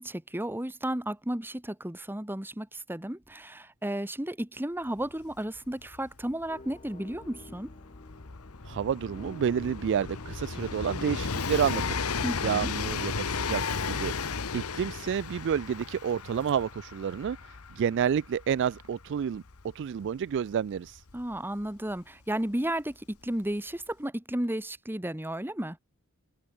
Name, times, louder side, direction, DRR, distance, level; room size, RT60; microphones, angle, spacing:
voice 1, 0.0-7.7 12.2-12.7 21.1-25.8, right 1 dB, 10° right, 1.4 m, -33 dB
Train, 5.0-5.1 5.3-21.9 22.9-23.0, left 5 dB, 75° left, 1.2 m, -35 dB
sound 1, 6.5-15.4, left 2 dB, 30° left, 1.8 m, -51 dB
voice 2, 8.6-12.0 12.4-17.4 17.8-19.4 19.8-21.0, right 8 dB, 55° right, 0.3 m, -29 dB
sound 2, 13.1-13.5 14.0-14.2 14.6-15.0 15.7-16.9 18.1-18.2 18.5-19.3, right 3 dB, 85° right, 6.5 m, -56 dB
head